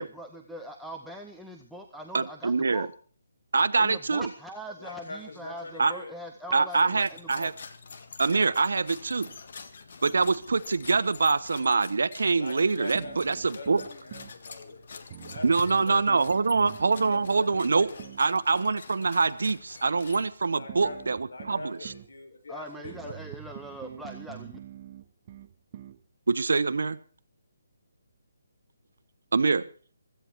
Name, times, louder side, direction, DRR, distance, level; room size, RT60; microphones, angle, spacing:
voice 1, 0.0-2.9 3.8-7.5 22.5-24.6, equal, ahead, 1 dB, 0.7 m, -42 dB
voice 2, 2.1-2.9 3.5-4.3 5.8-5.9 6.5-7.5 8.2-9.3 10.0-13.8 15.4-17.9 18.2-21.9 26.3-27.0 29.3-29.7, right 4 dB, 75° right, 14 dB, 1.1 m, -25 dB
voice 3, 4.8-6.1 12.4-16.3 17.1-18.1 20.5-23.4, left 2 dB, 70° left, 3 dB, 6.8 m, -43 dB
sound 1, 6.7-20.6, left 5 dB, 45° left, 1.8 m, -47 dB
sound 2, 12.9-14.4 15.1-18.3 20.7-22.1 22.8-26.0, right 10 dB, 25° right, 0.8 m, -44 dB
16.0 x 14.5 x 4.7 m, 0.42 s
hypercardioid pair, 170°, 0 cm